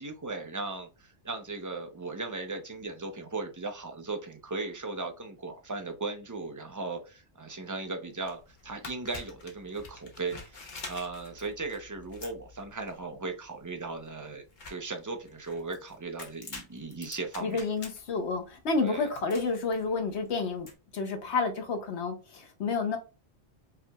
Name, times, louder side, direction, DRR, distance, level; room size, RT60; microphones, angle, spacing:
voice 1, 0.0-17.6 18.8-19.1, right 3 dB, 25° right, 0.4 m, -37 dB
sound 1, 8.1-20.7, left 3 dB, 50° left, 1.0 m, -48 dB
voice 2, 17.4-20.7 20.9-23.0, left 4 dB, 85° left, 1.1 m, -30 dB
5.4 x 2.9 x 2.3 m
omnidirectional pair, 1.1 m